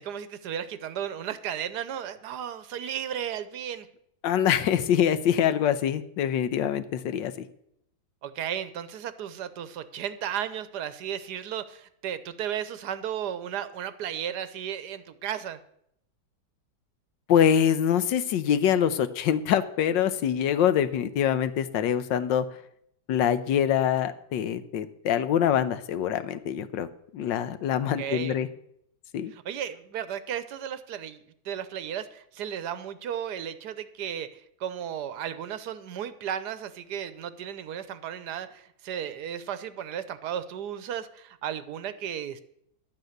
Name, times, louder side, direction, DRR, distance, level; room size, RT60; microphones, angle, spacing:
voice 1, 0.0-3.9 8.2-15.6 28.0-28.4 29.3-31.2 31.4-42.4, right 9 dB, 65° right, 13 dB, 1.2 m, -34 dB
voice 2, 4.2-7.5 17.3-22.4 23.1-26.9 27.1-28.5 29.1-29.3, left 9 dB, 75° left, 12 dB, 1.5 m, -24 dB
11.5 x 9.0 x 6.5 m, 0.73 s
omnidirectional pair, 2.0 m